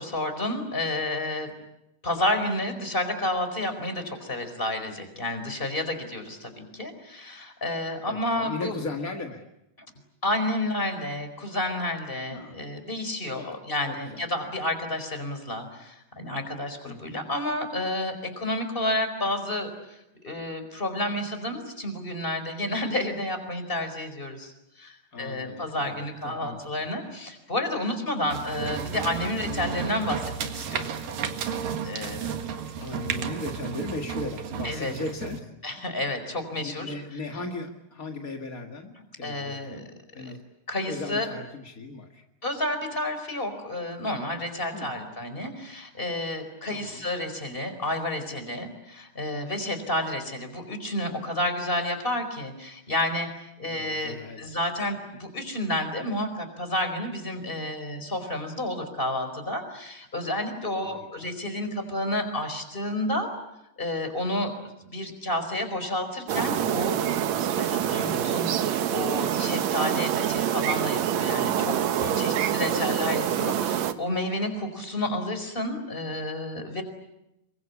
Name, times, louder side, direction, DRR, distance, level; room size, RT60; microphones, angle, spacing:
voice 1, 0.0-1.5 2.0-8.8 9.8-9.9 10.2-31.0 31.8-32.4 34.6-34.9 35.6-36.9 39.2-39.8 40.2-40.3 40.7-41.3 42.4-53.3 53.6-63.3 63.8-64.5 64.8-67.0 67.5-71.8 72.1-76.8, left 1 dB, 10° left, 7 dB, 4.3 m, -30 dB
voice 2, 8.1-9.4 12.3-12.6 13.3-13.5 13.9-14.2 16.8-17.3 25.1-26.9 28.4-28.8 32.8-35.5 36.5-39.9 40.1-40.4 40.8-42.2 44.7-44.9 46.7-47.1 53.6-54.4 60.8-61.3 68.0-68.3 72.0-72.3 72.6-72.9, left 2 dB, 45° left, 3 dB, 1.1 m, -37 dB
sound 1, 28.3-35.4, right 7 dB, 60° right, 3.2 m, -33 dB
sound 2, 66.3-73.9, right 10 dB, 85° right, 1.5 m, -26 dB
28.0 x 24.0 x 8.4 m, 0.88 s
omnidirectional pair, 5.0 m